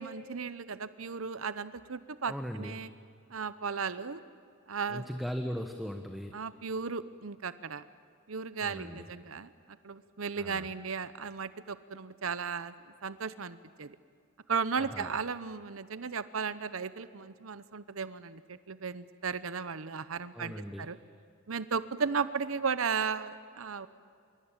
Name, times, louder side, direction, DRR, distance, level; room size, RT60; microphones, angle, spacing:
voice 1, 0.0-2.9 3.3-4.2 4.7-5.0 6.3-7.8 8.3-9.5 9.8-12.7 13.0-14.0 14.5-21.0 21.5-23.9, right 5 dB, 90° right, 14 dB, 0.8 m, -35 dB
voice 2, 2.3-2.8 4.9-6.4 8.6-9.1 10.4-10.7 14.8-15.1 20.3-20.9, equal, ahead, 5 dB, 1.1 m, -38 dB
25.5 x 23.5 x 9.0 m, 2.3 s
head